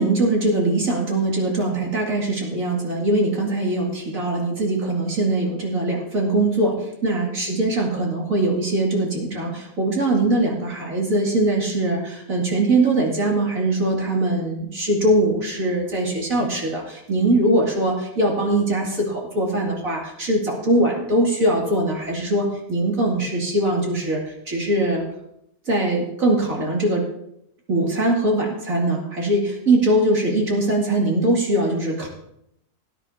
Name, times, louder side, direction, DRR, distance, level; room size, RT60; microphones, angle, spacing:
voice 1, 0.0-24.2 24.5-25.0 25.7-27.1 27.7-32.1, right 1 dB, 60° right, -2 dB, 3.0 m, -21 dB
18.5 x 10.0 x 2.8 m, 0.76 s
omnidirectional pair, 1.7 m